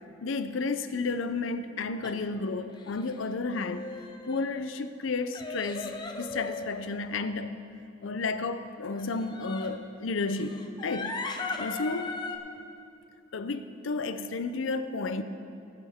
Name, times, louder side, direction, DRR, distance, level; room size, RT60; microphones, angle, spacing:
voice 1, 0.2-3.9 4.3-7.6 8.0-11.2 11.6-12.2 13.3-15.2, left 3 dB, 80° left, 0.6 m, -32 dB
all out crying, 2.0-2.2 2.7-3.2 3.5-4.6 5.3-7.0 9.0-9.8 10.3-12.4, left 3 dB, 20° left, 0.7 m, -38 dB
18.5 x 8.9 x 3.6 m
head